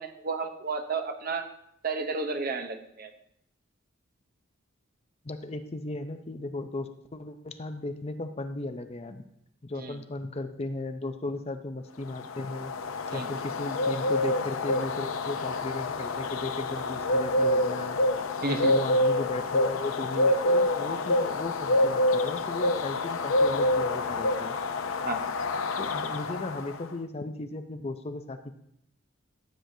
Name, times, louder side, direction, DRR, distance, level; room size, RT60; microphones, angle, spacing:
voice 1, 0.0-1.5 1.8-3.1 9.8-10.0 13.1-13.3 18.4-18.7 25.0-25.2, right 4 dB, 45° right, 6 dB, 0.8 m, -32 dB
voice 2, 5.2-9.2 9.6-12.7 13.1-18.0 18.5-24.6 25.8-28.7, left 2 dB, 30° left, 8 dB, 0.5 m, -36 dB
sound 1, 12.1-26.8, left 2 dB, 90° left, 0.6 m, -27 dB
14.5 x 7.7 x 2.7 m, 0.73 s
head